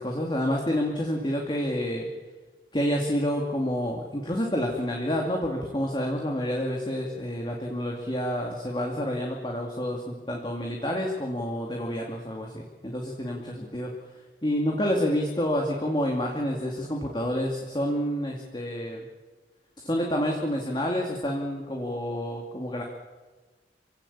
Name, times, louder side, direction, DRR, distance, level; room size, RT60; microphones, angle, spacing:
voice 1, 0.0-2.1 2.7-13.9 14.4-19.0 19.8-22.8, equal, 25° left, 0 dB, 2.4 m, -28 dB
27.0 x 17.0 x 8.7 m, 1.3 s
head